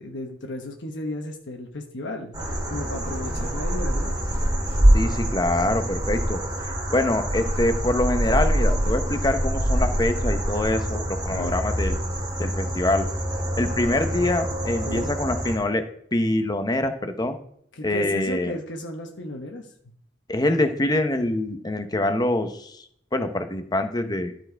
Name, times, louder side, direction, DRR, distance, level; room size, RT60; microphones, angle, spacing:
voice 1, 0.0-4.1 11.3-11.5 14.8-15.1 17.8-19.7, left 1 dB, 85° left, 2 dB, 1.2 m, -34 dB
sound 1, 2.3-15.6, equal, 25° right, 1.9 m, -25 dB
voice 2, 4.9-6.4 6.9-12.0 12.4-13.1 13.6-15.8 16.1-17.4 17.8-18.5 20.3-22.8 23.1-24.3, left 1 dB, 20° left, 8 dB, 0.9 m, -24 dB
12.5 x 4.5 x 4.6 m, 0.65 s
head